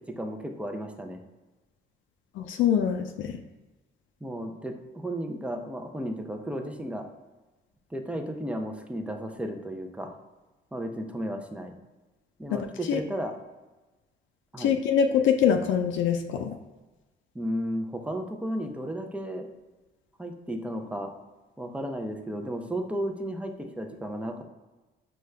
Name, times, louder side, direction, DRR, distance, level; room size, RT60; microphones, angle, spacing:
voice 1, 0.1-1.2 4.2-7.1 7.9-10.2 10.7-11.8 12.4-13.3 14.5-14.7 17.3-19.5 20.2-21.1 21.6-24.4, equal, 5° right, 4 dB, 0.5 m, -34 dB
voice 2, 2.4-3.3 12.5-13.0 14.6-16.6, left 8 dB, 75° left, 5 dB, 0.4 m, -24 dB
5.1 x 2.3 x 3.2 m, 1.2 s
cardioid pair, 90°, 20 cm